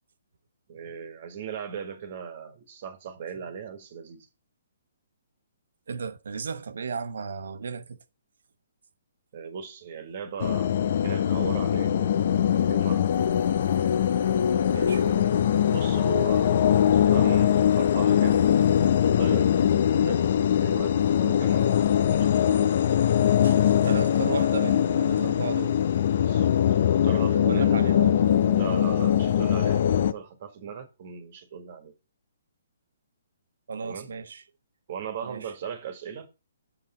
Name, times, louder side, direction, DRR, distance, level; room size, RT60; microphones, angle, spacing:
voice 1, 0.7-4.3 9.3-10.8 11.0-13.4 15.6-18.4 19.0-20.2 20.6-21.7 22.1-22.6 26.2-26.5 27.0-27.8 28.5-31.9 33.8-34.1 34.9-36.3, right 7 dB, 45° right, 1.5 m, -38 dB
voice 2, 5.9-8.0 14.7-15.3 23.4-25.8 27.4-28.6 33.7-34.4 35.2-35.5, right 5 dB, 70° right, 0.9 m, -35 dB
sound 1, 10.4-30.1, left 9 dB, 55° left, 0.6 m, -22 dB
7.9 x 5.8 x 4.2 m
figure-of-eight pair, 135°, 0 cm